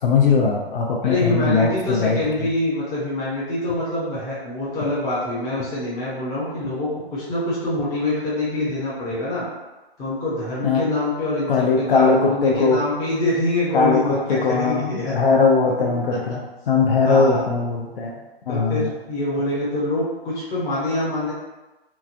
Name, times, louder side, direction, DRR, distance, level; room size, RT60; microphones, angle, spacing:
voice 1, 0.0-2.5 10.6-10.8 11.5-12.8 13.7-18.1 18.5-18.9, left 4 dB, 60° left, 1 dB, 0.6 m, -20 dB
voice 2, 1.0-9.4 10.0-15.2 17.0-17.4 18.5-21.3, left 1 dB, 10° left, -8 dB, 0.6 m, -25 dB
2.9 x 2.4 x 2.5 m, 1.1 s
hypercardioid pair, 140°, 31 cm